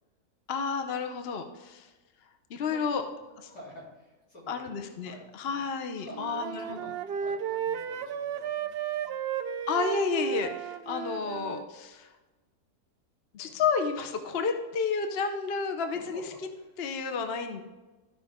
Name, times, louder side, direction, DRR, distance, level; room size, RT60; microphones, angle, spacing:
voice 1, 0.5-1.9 2.5-3.0 4.5-6.8 9.7-12.1 13.3-16.2 16.8-17.6, left 5 dB, 50° left, 6 dB, 0.8 m, -31 dB
voice 2, 2.7-3.0 3.5-9.1 13.4-13.6 15.8-16.2 16.5-16.7, equal, 75° left, -6 dB, 4.0 m, -50 dB
Wind instrument woodwind instrument, 6.1-11.6, right 8 dB, 85° right, 0.5 m, -33 dB
14.0 x 5.4 x 3.6 m, 1.2 s
omnidirectional pair, 1.6 m